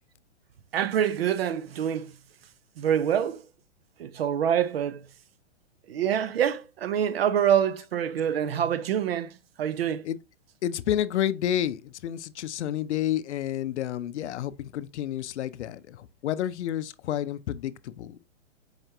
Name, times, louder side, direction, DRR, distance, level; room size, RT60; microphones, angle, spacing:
voice 1, 0.7-2.1 2.8-3.4 4.0-5.0 5.9-9.3 9.6-10.0, right 9 dB, 55° right, 0.4 m, -26 dB
voice 2, 10.6-18.2, left 11 dB, 70° left, 0.5 m, -30 dB
4.9 x 3.3 x 2.8 m
hypercardioid pair, 170°, 36 cm